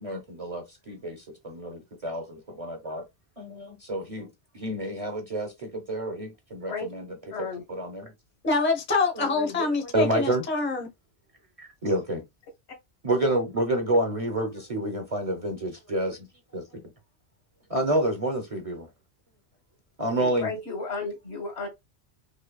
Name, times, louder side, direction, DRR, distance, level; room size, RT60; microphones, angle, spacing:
voice 1, 0.0-3.0 3.4-8.1 9.2-10.4 11.8-12.2 13.0-16.3 16.5-16.8 17.7-18.9 20.0-20.5, right 1 dB, 35° right, 0.7 m, -29 dB
voice 2, 7.3-7.6 20.2-21.7, left 4 dB, 70° left, 1.5 m, -33 dB
voice 3, 8.4-10.9, left 3 dB, 10° left, 0.6 m, -25 dB
5.1 x 2.2 x 2.3 m
omnidirectional pair, 1.2 m